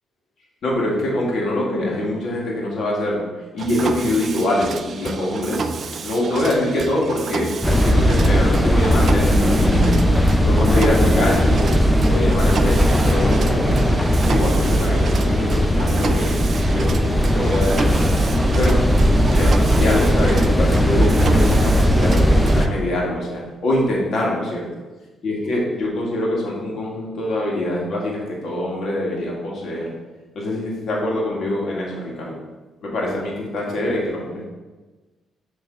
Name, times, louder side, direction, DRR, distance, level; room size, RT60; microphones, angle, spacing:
voice 1, 0.6-3.3 3.5-5.7 6.0-10.0 10.4-11.8 12.0-16.4 16.6-17.9 18.6-18.8 19.3-24.7 25.2-29.9 30.3-32.4 32.8-34.5, left 1 dB, 60° left, -3 dB, 1.8 m, -24 dB
Mechanisms, 3.6-22.7, right 5 dB, 50° right, 0.4 m, -31 dB
sound 1, 7.6-22.7, equal, 5° left, 0.5 m, -17 dB
6.4 x 3.2 x 4.8 m, 1.2 s
cardioid pair, 90°, 0 cm